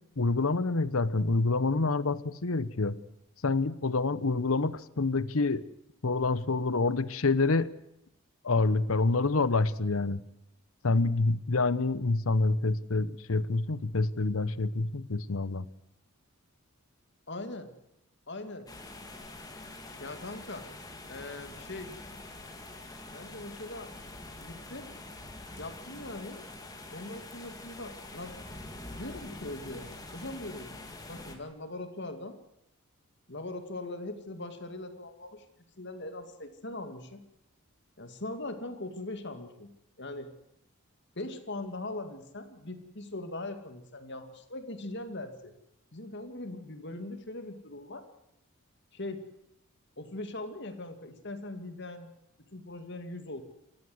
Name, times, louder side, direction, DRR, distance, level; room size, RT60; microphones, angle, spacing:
voice 1, 0.2-3.0 3.4-5.7 6.0-7.7 8.4-10.2 10.8-15.7, left 3 dB, 70° left, 17 dB, 0.9 m, -27 dB
voice 2, 17.3-17.7 18.3-18.7 20.0-20.6 21.1-21.9 23.1-23.9 24.3-24.9 25.6-26.4 26.9-28.4 29.0-30.8 31.1-32.4 33.3-35.4 35.8-37.2 38.0-39.7 40.0-40.3 41.2-45.5 45.9-48.0 48.9-49.2 50.0-52.1 52.5-53.4, left 2 dB, 50° left, 7 dB, 2.3 m, -40 dB
sound 1, 18.7-31.4, left 2 dB, 15° left, 2.3 m, -45 dB
28.5 x 13.5 x 7.9 m, 0.83 s
head